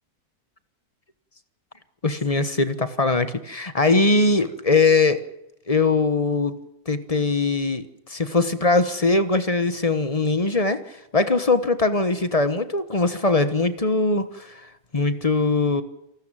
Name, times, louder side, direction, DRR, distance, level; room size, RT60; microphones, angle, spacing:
voice 1, 2.0-5.2 5.7-6.6 6.9-15.8, left 3 dB, 25° left, 12 dB, 1.1 m, -21 dB
29.0 x 13.0 x 9.0 m, 0.88 s
omnidirectional pair, 1.7 m